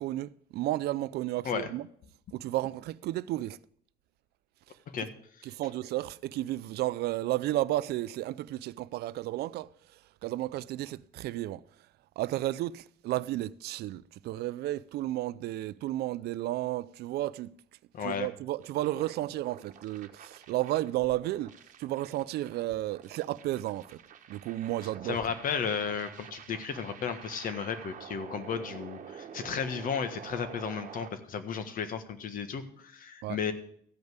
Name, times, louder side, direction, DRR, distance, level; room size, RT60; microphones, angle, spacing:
voice 1, 0.0-1.9 2.3-3.6 5.4-9.7 10.2-11.6 12.2-17.5 18.0-21.5 21.8-24.0 24.3-25.2 33.2-33.4, right 15 dB, 75° right, 0.5 m, -32 dB
voice 2, 17.9-18.3 25.0-33.5, left 6 dB, 55° left, 1.5 m, -34 dB
sound 1, 18.6-31.1, right 8 dB, 50° right, 1.3 m, -48 dB
14.5 x 5.3 x 7.9 m
cardioid pair, 110°, 17 cm